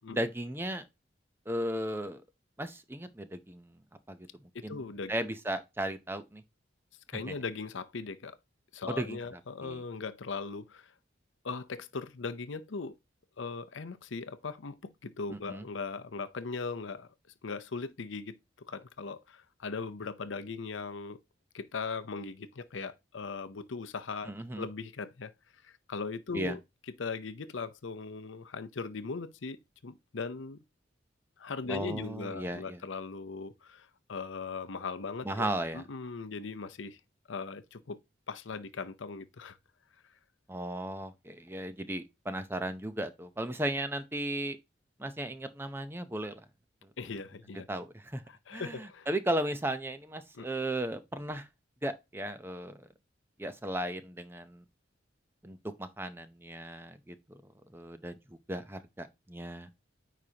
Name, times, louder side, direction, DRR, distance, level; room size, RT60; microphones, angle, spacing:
voice 1, 0.1-0.8 1.5-2.2 2.6-3.8 4.1-4.2 4.6-4.8 5.1-6.4 8.9-9.8 15.5-15.6 24.3-24.7 26.3-26.6 31.7-32.8 35.2-35.8 40.5-44.6 45.0-46.4 47.7-48.2 48.5-51.5 51.8-52.9 53.4-54.6 55.4-57.4 57.7-58.1 58.5-59.7, right 1 dB, 10° right, 0.7 m, -35 dB
voice 2, 4.5-5.1 7.1-8.4 8.7-10.9 11.4-13.0 13.4-17.1 17.4-21.2 21.5-25.3 25.6-26.6 27.0-30.6 31.4-37.0 37.3-38.0 38.3-39.6 47.0-47.7 48.3-49.1 50.3-50.5, left 4 dB, 80° left, 0.7 m, -39 dB
9.2 x 5.0 x 2.9 m
head